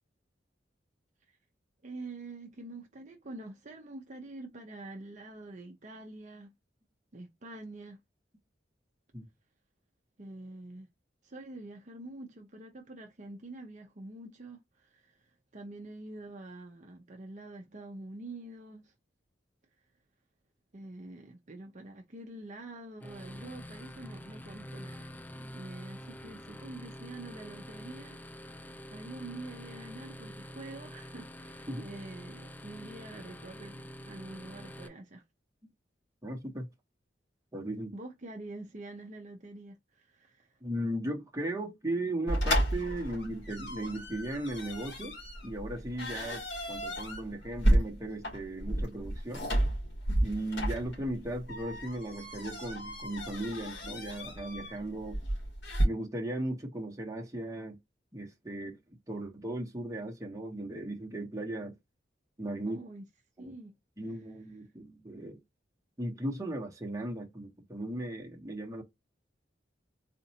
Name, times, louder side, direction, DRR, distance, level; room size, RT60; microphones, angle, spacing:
voice 1, 1.8-6.5 7.1-8.0 10.2-10.9 11.2-18.9 20.7-25.1 25.5-28.2 28.6-33.8 34.1-35.2 37.9-40.6 62.6-63.0 63.4-63.8, right 2 dB, 40° right, 0.7 m, -46 dB
sound 1, 23.0-34.9, equal, 10° left, 0.4 m, -46 dB
voice 2, 36.2-36.7 37.5-37.9 40.6-45.2 45.4-49.5 50.2-55.2 55.8-57.8 58.1-58.8 59.1-61.7 62.4-62.8 63.4-63.5 64.0-65.4 66.0-68.8, right 1 dB, 20° right, 1.1 m, -37 dB
sound 2, 42.3-55.8, equal, 75° left, 2.3 m, -32 dB
4.2 x 2.6 x 2.8 m
head